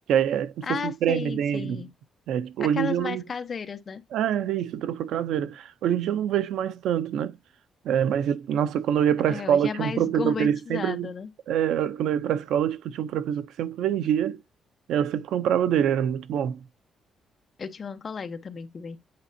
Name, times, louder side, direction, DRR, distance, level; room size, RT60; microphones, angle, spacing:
voice 1, 0.1-1.8 2.3-3.2 4.1-7.4 7.8-11.1 11.5-14.4 14.9-16.6, right 9 dB, 85° right, 0.6 m, -25 dB
voice 2, 0.6-1.9 2.6-4.0 9.3-11.3 17.6-19.0, left 5 dB, 30° left, 0.8 m, -33 dB
8.7 x 4.2 x 2.7 m
cardioid pair, 175°, 0 cm